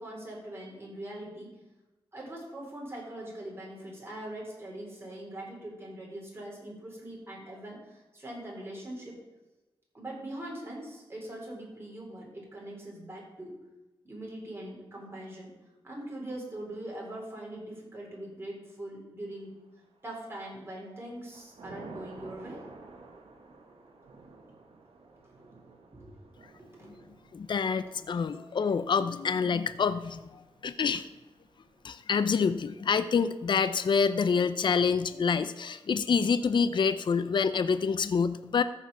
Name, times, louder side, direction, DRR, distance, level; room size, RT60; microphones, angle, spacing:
voice 1, 0.0-1.5 2.1-9.2 9.9-13.5 14.0-15.5 15.8-19.5 20.0-22.7 25.2-25.5 25.9-26.2 26.6-27.0 28.2-28.4, right 1 dB, 25° right, -3 dB, 4.0 m, -42 dB
Thunder / Rain, 19.7-20.3 20.7-31.8, right 3 dB, 85° right, 1.3 m, -52 dB
voice 2, 27.3-31.1 31.8-38.6, left 5 dB, 55° left, 12 dB, 0.5 m, -27 dB
14.0 x 4.9 x 5.5 m, 1.1 s
wide cardioid pair, 95°, 9 cm